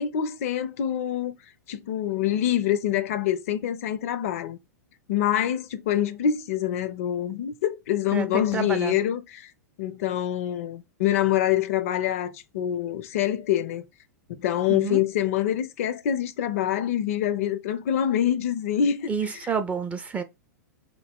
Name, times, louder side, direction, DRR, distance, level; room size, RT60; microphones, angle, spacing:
voice 1, 0.0-1.3 1.7-4.6 5.1-9.5 9.8-13.8 14.3-19.4, left 10 dB, 50° left, 0.4 m, -25 dB
voice 2, 8.1-9.0 14.7-15.0 19.1-20.2, right 6 dB, 15° right, 0.4 m, -29 dB
3.1 x 2.1 x 3.4 m
figure-of-eight pair, 100°, 10 cm